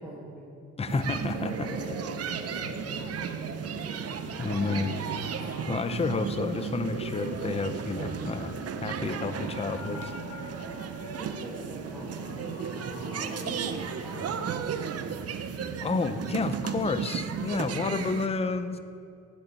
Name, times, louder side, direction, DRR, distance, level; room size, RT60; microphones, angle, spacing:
voice 1, 0.0-0.6 1.3-3.5 4.5-4.9 11.2-12.8 13.1-15.2, right 1 dB, 5° right, -8 dB, 2.7 m, -43 dB
voice 2, 0.8-1.7 4.4-4.9 5.7-8.5 8.8-10.1 15.8-18.8, left 4 dB, 20° left, 10 dB, 0.7 m, -30 dB
sound 1, 0.9-18.3, right 7 dB, 55° right, 0.8 m, -35 dB
sound 2, 1.3-14.5, left 2 dB, 50° left, 2.0 m, -44 dB
Motorcycle, 3.1-6.4, right 2 dB, 30° right, 2.0 m, -50 dB
9.9 x 8.1 x 9.2 m, 2.4 s
cardioid pair, 90°, 30 cm